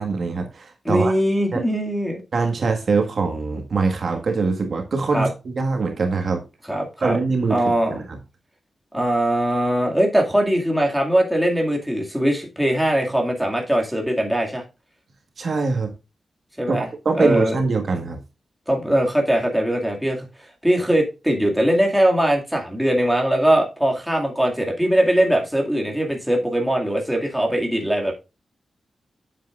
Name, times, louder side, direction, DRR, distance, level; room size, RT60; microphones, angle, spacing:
voice 1, 0.0-1.1 1.5-1.6 2.3-6.4 7.0-7.6 7.9-8.2 15.4-15.9 16.7-16.8 17.0-18.2, right 4 dB, 55° right, 1.6 m, -23 dB
voice 2, 0.8-2.2 5.1-5.3 6.7-7.2 7.5-7.9 8.9-14.6 16.6-16.9 17.2-17.6 18.7-20.3 20.6-28.1, right 1 dB, 5° right, 2.2 m, -21 dB
9.0 x 7.6 x 2.5 m
wide cardioid pair, 140°, 0 cm